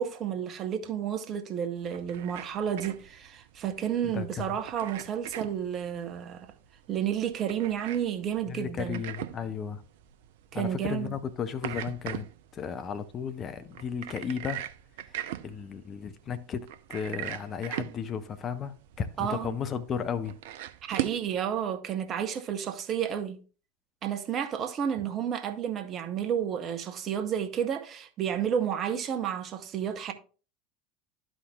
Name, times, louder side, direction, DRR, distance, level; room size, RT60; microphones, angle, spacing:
voice 1, 0.0-6.5 6.9-9.0 10.5-11.1 19.2-19.6 20.8-23.4 24.0-30.1, right 9 dB, 35° right, 0.9 m, -31 dB
sound 1, 1.8-21.3, right 12 dB, 60° right, 0.5 m, -41 dB
voice 2, 4.0-4.6 8.5-9.8 10.5-14.6 15.4-20.4 25.0-25.1, left 7 dB, 35° left, 0.7 m, -34 dB
13.0 x 5.1 x 2.3 m
figure-of-eight pair, 75°, 0 cm